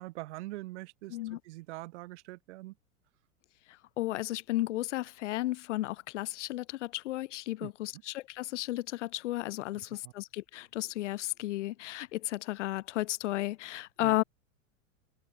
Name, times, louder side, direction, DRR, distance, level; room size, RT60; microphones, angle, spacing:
voice 1, 0.0-2.8 7.6-8.0 9.7-10.1 14.0-14.2, right 19 dB, 50° right, 2.5 m, -44 dB
voice 2, 4.0-14.2, left 16 dB, 55° left, 1.3 m, -34 dB
figure-of-eight pair, 95°, 43 cm